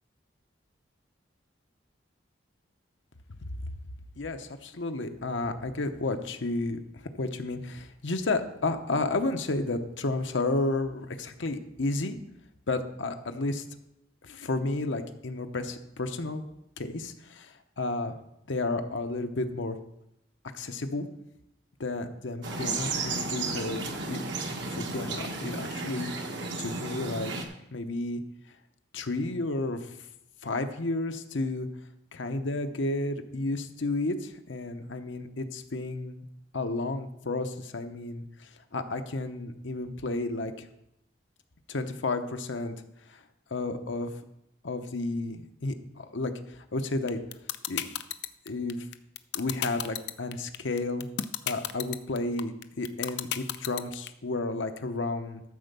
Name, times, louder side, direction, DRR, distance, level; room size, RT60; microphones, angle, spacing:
voice 1, 4.2-12.2 12.7-13.6 14.2-16.4 16.8-18.1 18.5-19.8 20.5-21.1 21.8-26.1 26.6-28.2 28.9-30.0 30.4-31.7 32.1-36.2 36.5-40.7 41.7-42.7 43.1-43.2 43.5-44.1 44.6-47.2 47.7-47.9 48.5-48.9 49.3-51.1 51.5-55.4, left 2 dB, 75° left, 7 dB, 0.9 m, -32 dB
sound 1, 22.4-27.5, right 3 dB, 65° right, 1.2 m, -33 dB
sound 2, 47.1-54.1, left 11 dB, 60° left, 0.5 m, -31 dB
13.0 x 4.5 x 6.8 m, 0.82 s
head